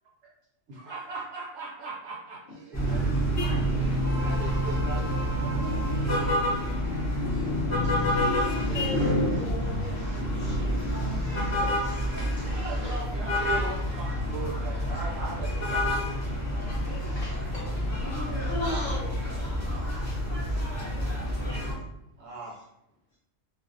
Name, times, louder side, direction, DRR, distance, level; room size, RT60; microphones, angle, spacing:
voice 1, 0.7-3.2 4.2-6.5 9.7-9.8 12.5-16.4 16.8-17.5 22.2-22.5, right 3 dB, 65° right, -5 dB, 1.0 m, -40 dB
sound 1, 2.7-21.7, equal, 20° left, 0.5 m, -28 dB
voice 2, 2.7-3.0 3.3-3.6 18.4-18.8 20.1-21.7, right 1 dB, 25° right, -6 dB, 0.6 m, -45 dB
voice 3, 7.8-13.0 16.3-17.7 18.4-20.2, left 1 dB, 70° left, -4 dB, 0.4 m, -39 dB
2.3 x 2.0 x 2.5 m, 0.84 s
omnidirectional pair, 1.3 m